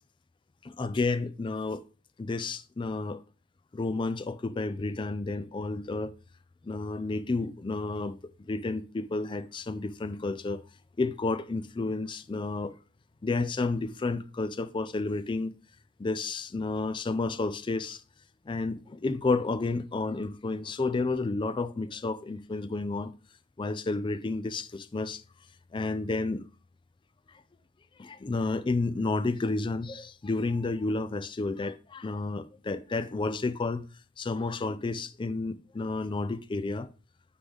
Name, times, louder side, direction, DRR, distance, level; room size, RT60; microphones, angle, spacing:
voice 1, 0.6-1.8 2.2-3.2 3.7-6.1 6.6-8.2 8.5-10.6 11.0-12.7 13.2-15.5 16.0-18.0 18.5-23.1 23.6-25.2 25.7-26.4 28.0-33.8 34.2-36.9, left 3 dB, 25° left, 0.3 m, -31 dB
9.6 x 3.8 x 3.4 m
head